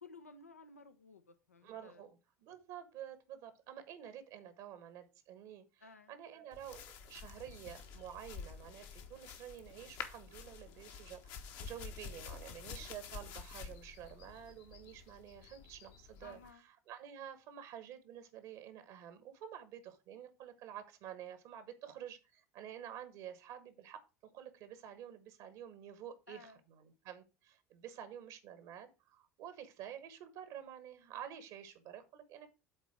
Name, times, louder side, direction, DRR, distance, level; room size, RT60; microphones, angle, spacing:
voice 1, 0.0-2.0 5.8-6.1 16.2-16.6 26.3-26.6, left 4 dB, 80° left, 9 dB, 0.9 m, -56 dB
voice 2, 1.6-32.5, right 10 dB, 55° right, 11 dB, 1.2 m, -50 dB
sound 1, 6.5-16.5, left 6 dB, 55° left, 1.2 m, -49 dB
8.1 x 4.0 x 6.1 m, 0.29 s
figure-of-eight pair, 65°, 8 cm